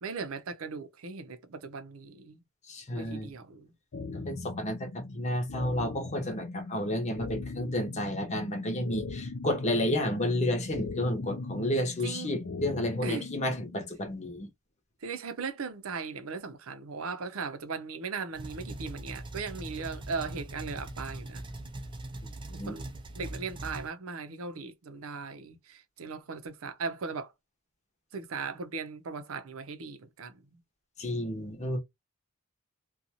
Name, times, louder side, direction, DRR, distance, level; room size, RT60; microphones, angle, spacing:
voice 1, 0.0-2.4 2.9-3.7 12.0-12.3 13.0-13.3 15.0-21.4 22.6-22.9 23.2-27.3 28.1-30.4, right 4 dB, 80° right, 0.6 m, -38 dB
voice 2, 2.7-3.3 4.1-4.9 5.1-14.5 22.5-22.8 31.0-31.8, left 1 dB, 35° left, 0.9 m, -31 dB
sound 1, 3.9-13.9, left 3 dB, 65° left, 0.5 m, -39 dB
sound 2, 18.4-23.9, right 1 dB, 25° right, 0.4 m, -41 dB
2.6 x 2.3 x 2.8 m
head